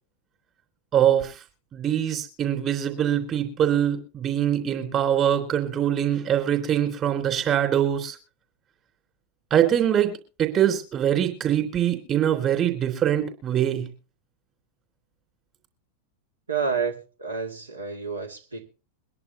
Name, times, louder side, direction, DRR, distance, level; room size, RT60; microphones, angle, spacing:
voice 1, 0.9-1.4 1.7-8.2 9.5-10.1 10.4-13.9, right 10 dB, 30° right, 3.5 m, -23 dB
voice 2, 16.5-18.7, right 5 dB, 75° right, 2.2 m, -29 dB
23.0 x 11.0 x 2.8 m
figure-of-eight pair, 90°, 0 cm